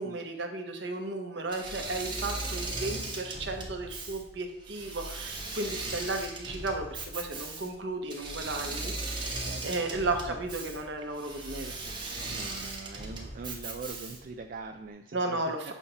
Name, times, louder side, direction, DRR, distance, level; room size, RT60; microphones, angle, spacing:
voice 1, 0.0-11.8 12.1-12.3 15.1-15.7, right 2 dB, 65° right, 4 dB, 0.9 m, -34 dB
Engine / Mechanisms, 1.5-14.4, right 2 dB, 25° right, 0.8 m, -38 dB
voice 2, 9.4-10.4 10.6-10.7 12.1-15.7, right 4 dB, 45° right, 5 dB, 0.3 m, -43 dB
7.1 x 2.8 x 5.5 m, 0.81 s
head